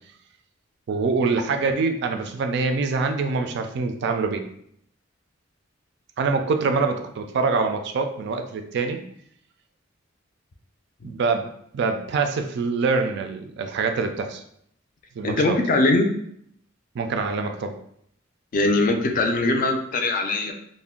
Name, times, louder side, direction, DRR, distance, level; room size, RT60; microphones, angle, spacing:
voice 1, 0.9-4.4 6.2-9.0 11.0-11.5 11.7-14.4 15.2-15.6 16.9-17.8, right 4 dB, 60° right, 6 dB, 0.3 m, -25 dB
voice 2, 15.2-16.1 18.5-20.5, left 2 dB, 45° left, 5 dB, 0.4 m, -21 dB
2.5 x 2.1 x 3.6 m, 0.69 s
head